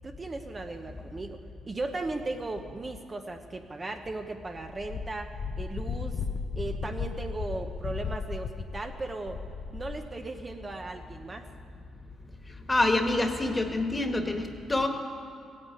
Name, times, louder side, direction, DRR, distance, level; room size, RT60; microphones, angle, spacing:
voice 1, 0.0-6.2 6.6-9.4 9.7-11.4, right 2 dB, 25° right, 4 dB, 0.9 m, -37 dB
Wind, 4.7-10.1, left 5 dB, 50° left, 0.7 m, -35 dB
voice 2, 12.7-14.9, left 2 dB, 20° left, 5 dB, 1.7 m, -26 dB
16.0 x 9.8 x 8.4 m, 2.4 s
cardioid pair, 90°, 0 cm